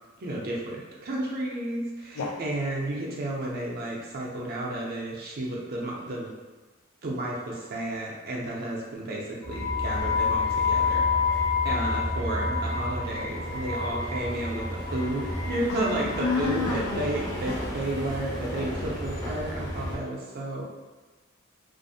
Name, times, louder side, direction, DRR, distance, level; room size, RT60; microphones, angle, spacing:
voice 1, 0.2-6.3 7.0-20.6, right 1 dB, 45° right, -3 dB, 0.5 m, -32 dB
sound 1, 9.4-20.0, left 3 dB, 15° left, 0.5 m, -29 dB
voice 2, 15.7-17.1, left 4 dB, 90° left, -1 dB, 0.5 m, -29 dB
2.5 x 2.0 x 2.7 m, 1.2 s
head